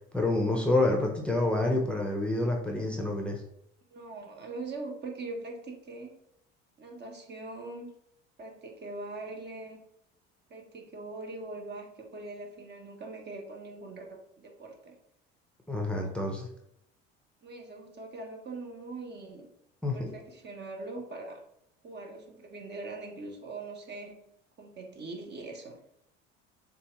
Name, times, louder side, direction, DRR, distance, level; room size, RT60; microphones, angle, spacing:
voice 1, 0.1-3.4 15.7-16.5 19.8-20.1, left 2 dB, 5° left, 1 dB, 0.8 m, -28 dB
voice 2, 3.9-6.2 6.8-7.9 8.4-9.8 10.5-14.9 17.4-19.5 19.9-21.4 21.8-24.2 24.6-25.8, right 2 dB, 35° right, 2 dB, 1.1 m, -42 dB
6.7 x 2.5 x 3.1 m, 0.74 s
supercardioid pair, 95°, 29 cm